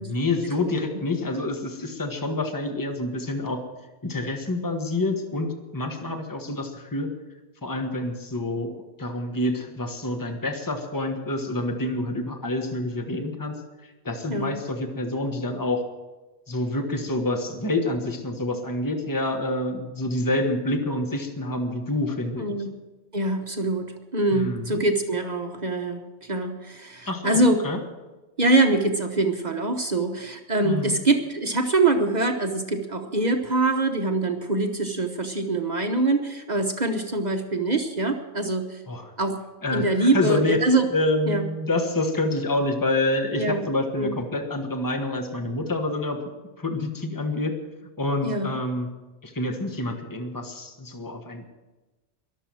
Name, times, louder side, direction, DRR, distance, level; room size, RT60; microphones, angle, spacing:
voice 1, 0.0-3.6 4.0-7.1 7.6-8.7 9.0-13.5 14.0-15.8 16.5-22.6 24.3-24.8 27.1-27.4 27.6-27.8 30.6-31.0 38.9-39.1 39.6-46.2 46.6-47.5 48.0-48.9 49.2-51.5, left 2 dB, 20° left, 5 dB, 1.3 m, -27 dB
voice 2, 22.4-22.7 23.1-27.6 28.4-38.8 39.2-39.4 39.7-40.9 41.3-41.5 43.4-43.6 44.0-44.1 48.2-48.6, right 2 dB, 40° right, 4 dB, 1.1 m, -24 dB
22.0 x 7.5 x 6.2 m, 1.2 s
omnidirectional pair, 1.1 m